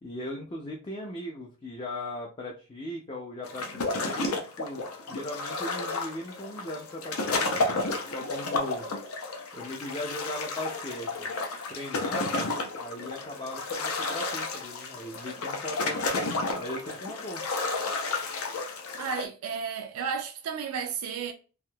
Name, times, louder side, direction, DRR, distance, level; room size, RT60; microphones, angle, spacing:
voice 1, 0.0-8.9 9.5-11.3 11.7-17.4, left 1 dB, 25° left, 0.4 m, -39 dB
sound 1, 3.4-19.3, left 3 dB, 65° left, 0.6 m, -32 dB
voice 2, 19.0-21.3, right 6 dB, 70° right, 0.4 m, -33 dB
3.4 x 2.6 x 2.2 m
head